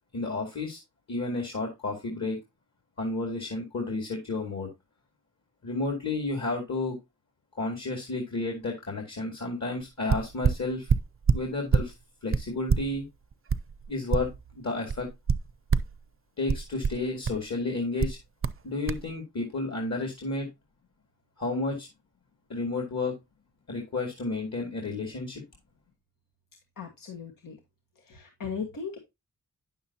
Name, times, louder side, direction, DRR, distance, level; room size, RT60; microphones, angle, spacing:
voice 1, 0.1-0.8 1.1-2.4 3.0-4.7 5.6-7.0 7.6-10.9 11.3-11.9 12.2-13.0 13.9-14.3 14.6-15.1 16.4-18.2 18.6-20.5 21.4-21.9 22.5-23.1 23.7-25.4, left 3 dB, 55° left, 2.5 m, -31 dB
sound 1, 9.8-9.9 10.1-11.9 12.3-14.6 14.9-16.0 16.5-17.5 18.0-18.6 18.9-19.0, right 6 dB, 40° right, 0.6 m, -26 dB
voice 2, 26.7-27.6 27.9-29.0, left 6 dB, 80° left, 1.6 m, -38 dB
9.6 x 7.1 x 2.8 m
wide cardioid pair, 95°, 33 cm